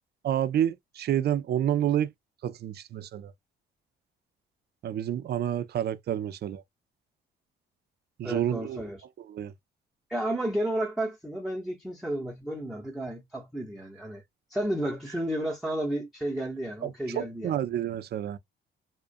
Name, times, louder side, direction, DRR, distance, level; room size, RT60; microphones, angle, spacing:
voice 1, 0.2-2.1 2.4-3.3 4.8-6.6 8.2-8.8 9.3-9.5 17.2-18.4, right 10 dB, 55° right, 0.5 m, -29 dB
voice 2, 8.2-9.1 10.1-14.2 14.5-17.5, right 1 dB, ahead, 0.8 m, -32 dB
2.4 x 2.1 x 2.4 m
cardioid pair, 90°, 20 cm